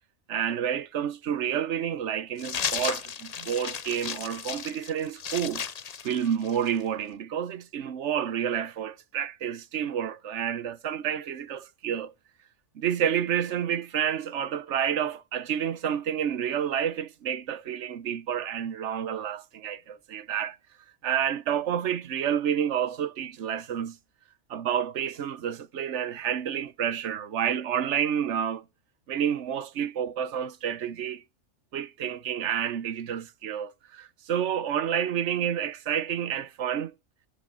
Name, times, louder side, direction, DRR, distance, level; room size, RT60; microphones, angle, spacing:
voice 1, 0.3-5.7 6.0-12.1 12.7-20.6 21.0-24.0 24.5-28.6 29.1-31.2 31.7-36.9, right 9 dB, 75° right, 1.1 m, -29 dB
sound 1, 2.4-6.8, left 7 dB, 40° left, 0.6 m, -34 dB
11.5 x 7.6 x 5.4 m
omnidirectional pair, 1.2 m